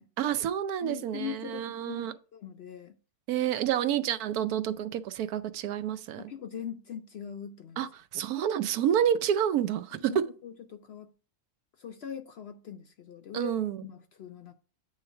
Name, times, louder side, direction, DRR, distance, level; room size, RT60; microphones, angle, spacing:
voice 1, 0.2-2.1 3.3-6.3 7.8-10.2 13.3-13.8, right 9 dB, 85° right, 1.1 m, -29 dB
voice 2, 0.8-3.0 6.2-7.9 8.9-9.0 10.0-11.1 11.8-14.5, left 8 dB, 65° left, 0.6 m, -42 dB
8.5 x 3.2 x 5.5 m
omnidirectional pair, 1.6 m